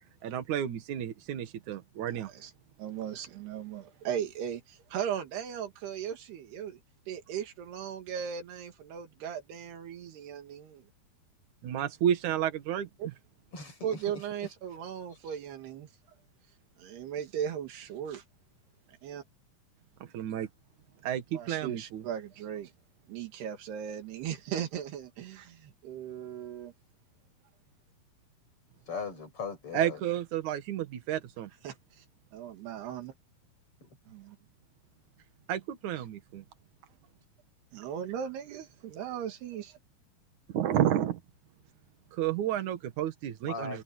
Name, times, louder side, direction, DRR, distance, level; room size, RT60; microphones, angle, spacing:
voice 1, 0.2-2.3 11.6-12.9 20.0-20.5 21.0-22.1 29.7-31.5 35.5-36.4 40.5-41.2 42.1-43.8, right 10 dB, 55° right, 2.8 m, -31 dB
voice 2, 2.8-6.8 7.1-10.8 13.0-13.1 13.8-15.9 16.8-18.2 19.0-19.2 21.3-22.7 23.1-26.7 31.6-32.1 32.3-33.1 34.1-34.4 36.0-36.1 37.7-39.8, right 9 dB, 85° right, 4.1 m, -37 dB
voice 3, 13.5-14.2 28.9-30.0 33.8-33.9 43.5-43.8, left 5 dB, 35° left, 7.0 m, -39 dB
omnidirectional pair, 4.5 m